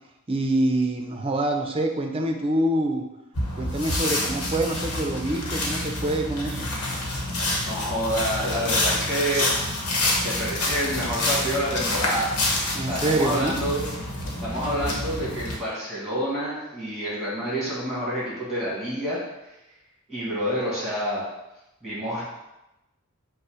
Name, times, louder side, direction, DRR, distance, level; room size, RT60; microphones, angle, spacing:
voice 1, 0.3-3.0 3.5-6.7 12.7-13.6, right 1 dB, 25° right, 4 dB, 0.4 m, -25 dB
sound 1, 3.3-15.6, left 1 dB, 90° left, 1.0 m, -27 dB
voice 2, 7.7-9.5 10.2-12.4 12.8-13.8 14.4-19.2 20.1-21.3 21.8-22.2, equal, 5° right, -7 dB, 1.6 m, -28 dB
5.3 x 2.0 x 4.8 m, 0.94 s
head